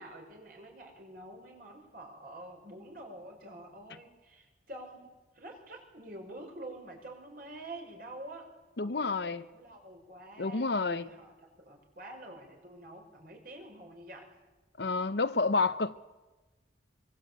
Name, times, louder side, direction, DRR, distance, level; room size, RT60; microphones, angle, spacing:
voice 1, 0.0-5.1 5.3-8.5 8.8-14.3, right 1 dB, 50° right, 5.8 m, -47 dB
voice 2, 8.8-9.4 10.4-11.1 14.8-16.0, left 3 dB, 65° left, 0.9 m, -29 dB
24.5 x 24.0 x 8.3 m
head